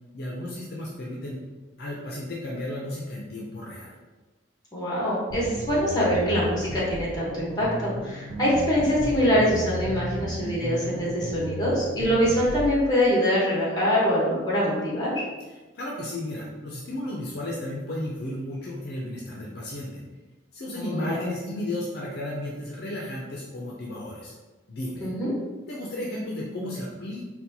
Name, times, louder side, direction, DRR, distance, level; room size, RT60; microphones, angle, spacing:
voice 1, 0.1-1.4 1.8-4.0 15.7-19.9 20.5-24.3 24.7-25.1 25.7-27.3, left 1 dB, 60° left, -4 dB, 0.5 m, -33 dB
voice 2, 4.7-15.2 20.7-21.2 25.0-25.3, equal, 20° left, -6 dB, 1.1 m, -24 dB
sound 1, 5.3-12.7, right 1 dB, 60° right, 0.4 m, -34 dB
4.1 x 2.2 x 2.8 m, 1.2 s
head